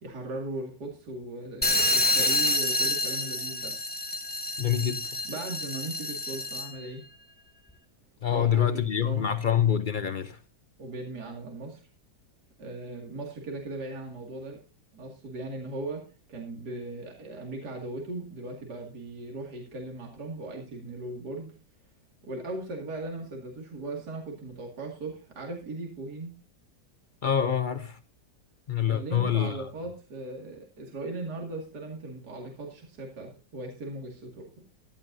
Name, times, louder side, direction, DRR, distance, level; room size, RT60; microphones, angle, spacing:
voice 1, 0.0-3.7 5.3-7.0 8.3-9.3 10.8-11.8 12.6-14.6 14.9-16.0 16.3-21.5 22.2-26.3 28.9-34.6, right 2 dB, 65° right, 2.8 m, -38 dB
sound 1, 1.6-6.8, left 1 dB, 10° left, 0.5 m, -28 dB
voice 2, 4.6-5.0 8.2-10.4 27.2-28.0 28.7-29.6, left 9 dB, 75° left, 0.4 m, -26 dB
16.0 x 12.0 x 2.7 m
omnidirectional pair, 1.8 m